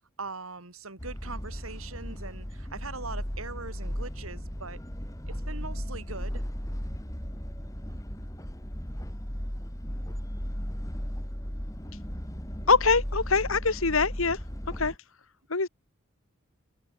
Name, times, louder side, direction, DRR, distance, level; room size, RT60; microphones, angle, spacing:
voice 1, 0.2-4.8 5.3-6.4, right 4 dB, 90° right, 3.5 m, -41 dB
sound 1, 1.0-15.0, equal, 15° left, 2.5 m, -36 dB
voice 2, 12.7-14.4 14.8-14.9 15.5-15.7, left 4 dB, 80° left, 1.8 m, -23 dB
head